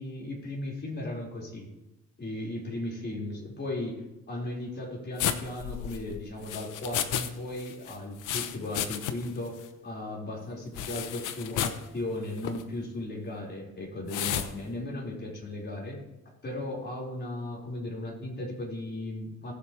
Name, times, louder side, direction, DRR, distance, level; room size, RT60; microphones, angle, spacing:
voice 1, 0.0-1.7 2.2-16.0 16.4-19.5, left 1 dB, 35° left, -3 dB, 5.1 m, -36 dB
sound 1, 5.2-7.3 7.6-9.4 9.6-9.7 10.8-11.8 12.4-12.6 14.1-14.5, left 10 dB, 90° left, 0.9 m, -32 dB
20.0 x 7.5 x 3.3 m, 0.92 s
cardioid pair, 90°, 30 cm